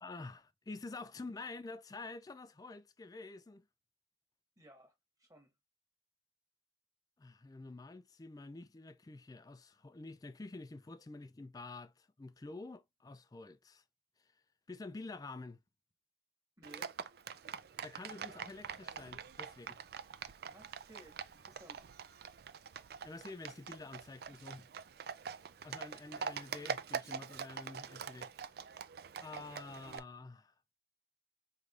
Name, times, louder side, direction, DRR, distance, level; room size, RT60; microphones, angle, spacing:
voice 1, 0.0-3.6 7.2-13.8 14.7-15.6 17.8-19.8 23.0-24.7 25.6-28.3 29.2-30.5, left 3 dB, 20° left, 0.3 m, -48 dB
voice 2, 4.6-4.9 5.2-5.5 16.6-17.0 20.5-21.9, right 1 dB, 20° right, 1.6 m, -58 dB
Livestock farm animals working animals, 16.6-30.0, right 6 dB, 60° right, 0.4 m, -45 dB
5.0 x 3.2 x 2.4 m
head